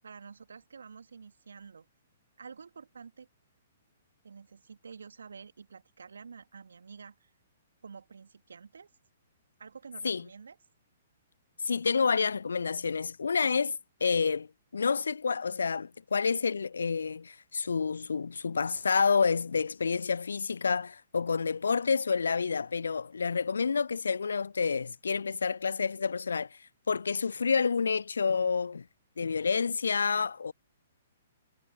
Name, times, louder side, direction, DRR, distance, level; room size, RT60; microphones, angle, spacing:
voice 1, 0.0-1.9 2.4-3.3 4.2-7.3 7.8-8.9 9.6-10.6, right 5 dB, 65° right, 2.6 m, -49 dB
voice 2, 11.6-14.5 14.7-26.6 26.9-28.8 29.2-30.5, left 5 dB, 70° left, 0.5 m, -29 dB
figure-of-eight pair, 120°, 0 cm